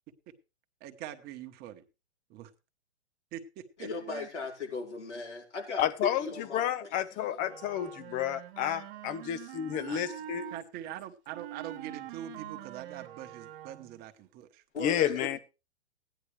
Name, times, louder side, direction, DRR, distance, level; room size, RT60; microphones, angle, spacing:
voice 1, 0.8-1.8 2.3-2.5 3.3-4.3 9.9-10.0 10.5-14.6, right 11 dB, 30° right, 1.2 m, -43 dB
voice 2, 3.8-7.9 14.7-15.4, left 3 dB, 90° left, 4.7 m, -39 dB
voice 3, 5.8-10.4 14.8-15.4, left 11 dB, 25° left, 0.8 m, -31 dB
Wind instrument woodwind instrument, 7.4-10.6 11.3-14.1, right 13 dB, 55° right, 1.5 m, -45 dB
15.5 x 10.0 x 3.3 m
hypercardioid pair, 130°, 34 cm